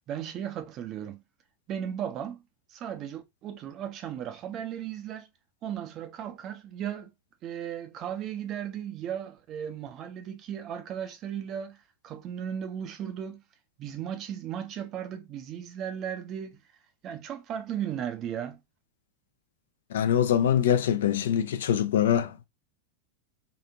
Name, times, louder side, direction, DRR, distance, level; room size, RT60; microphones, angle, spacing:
voice 1, 0.1-1.2 1.7-2.4 2.7-5.3 5.6-7.1 7.4-13.4 13.8-16.6 17.0-18.6, right 9 dB, 35° right, 0.5 m, -36 dB
voice 2, 19.9-22.4, left 9 dB, 60° left, 0.3 m, -24 dB
2.9 x 2.4 x 2.4 m
figure-of-eight pair, 90°, 0 cm